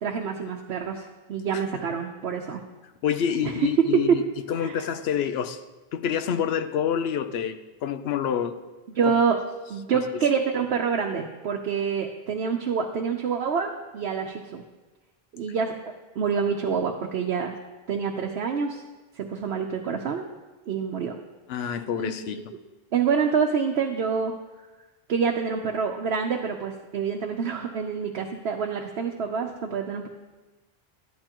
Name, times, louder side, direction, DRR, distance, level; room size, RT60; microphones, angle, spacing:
voice 1, 0.0-2.6 3.4-4.2 4.6-4.8 9.0-9.4 9.7-14.6 15.3-17.6 17.9-18.8 19.1-20.2 20.7-21.2 22.0-22.4 22.9-24.3 25.1-30.1, right 6 dB, 85° right, 1.0 m, -26 dB
voice 2, 3.0-4.2 4.5-5.6 5.9-8.6 21.5-22.5, left 8 dB, 80° left, 0.8 m, -27 dB
12.5 x 11.0 x 3.0 m
omnidirectional pair, 1.0 m